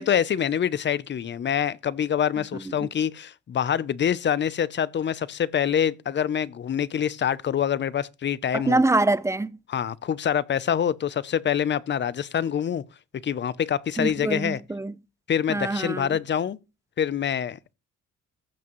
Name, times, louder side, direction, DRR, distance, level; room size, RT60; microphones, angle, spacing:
voice 1, 0.0-8.8 9.7-12.8 13.2-14.6 15.3-16.6 17.0-17.7, left 8 dB, 40° left, 0.5 m, -25 dB
voice 2, 2.5-2.9 8.5-9.5 14.0-14.9 15.5-16.2, right 2 dB, 10° right, 0.4 m, -25 dB
15.0 x 6.0 x 3.0 m
cardioid pair, 90°, 30 cm